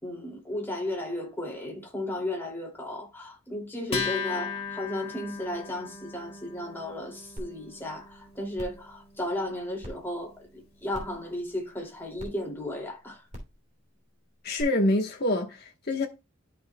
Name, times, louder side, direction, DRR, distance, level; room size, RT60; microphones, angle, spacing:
voice 1, 0.0-13.2, left 1 dB, 10° left, 2.4 m, -34 dB
Acoustic guitar, 3.9-10.8, left 5 dB, 30° left, 2.1 m, -38 dB
sound 1, 7.4-7.5 7.9-8.0 8.5-8.8 9.8-9.9 10.9-11.2 12.2-12.3 13.3-13.5 14.6-14.7, equal, 35° right, 2.9 m, -40 dB
voice 2, 14.4-16.1, left 1 dB, 50° left, 1.1 m, -26 dB
13.0 x 5.5 x 2.2 m
head